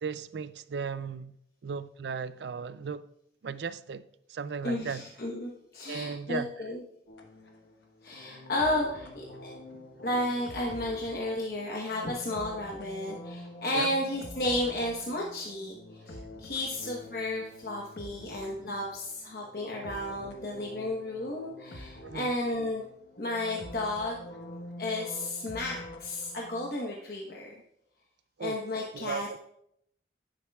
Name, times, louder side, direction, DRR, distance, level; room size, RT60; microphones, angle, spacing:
voice 1, 0.0-1.3 1.6-3.0 3.4-5.1 5.9-6.5 9.8-9.9 13.7-13.9 18.2-18.3 22.0-22.4 28.4-28.6 28.9-29.4, right 5 dB, 75° right, 0.4 m, -36 dB
voice 2, 4.6-6.8 8.0-9.5 10.0-22.9 23.2-24.3 24.8-27.5 28.4-29.3, left 1 dB, 55° left, 1.1 m, -33 dB
sound 1, 7.1-26.7, left 1 dB, 85° left, 1.2 m, -46 dB
11.0 x 10.0 x 2.3 m
head